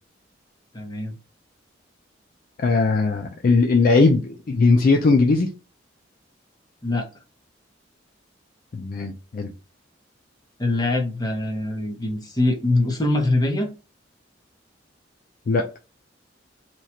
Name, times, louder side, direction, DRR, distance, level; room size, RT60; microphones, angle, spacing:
voice 1, 0.7-1.1 6.8-7.1 10.6-13.7, left 2 dB, 20° left, 0.9 m, -23 dB
voice 2, 2.6-5.5 8.7-9.5 15.5-15.7, left 3 dB, 50° left, 0.4 m, -19 dB
3.0 x 2.4 x 4.2 m
head